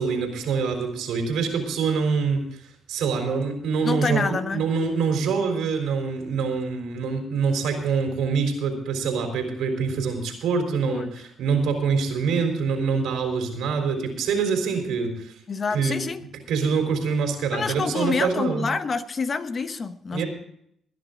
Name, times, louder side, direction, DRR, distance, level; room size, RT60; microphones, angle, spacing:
voice 1, 0.0-2.6 2.9-15.4 15.7-16.0 16.5-18.7 20.1-20.3, right 5 dB, 85° right, 4 dB, 3.7 m, -25 dB
voice 2, 3.8-4.7 10.8-11.1 15.5-16.2 17.5-20.2, left 4 dB, 40° left, 10 dB, 1.1 m, -27 dB
20.0 x 10.5 x 3.8 m, 0.69 s
cardioid pair, 90°, 0 cm